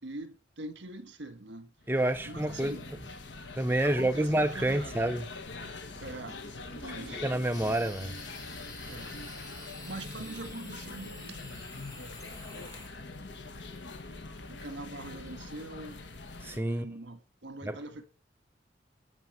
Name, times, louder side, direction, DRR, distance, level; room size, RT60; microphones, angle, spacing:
voice 1, 0.0-1.7 2.2-2.9 3.8-4.9 6.0-7.2 8.9-9.2 9.8-12.1 13.3-13.6 14.5-16.0 16.6-18.0, right 2 dB, 70° right, 1.6 m, -44 dB
sound 1, 1.8-16.6, left 3 dB, 70° left, 1.5 m, -43 dB
voice 2, 1.9-2.7 3.6-5.3 7.1-8.1 16.4-16.9 17.6-17.8, right 1 dB, 10° right, 0.5 m, -28 dB
sound 2, 7.5-12.9, left 2 dB, 20° left, 2.6 m, -48 dB
12.5 x 5.0 x 7.8 m
head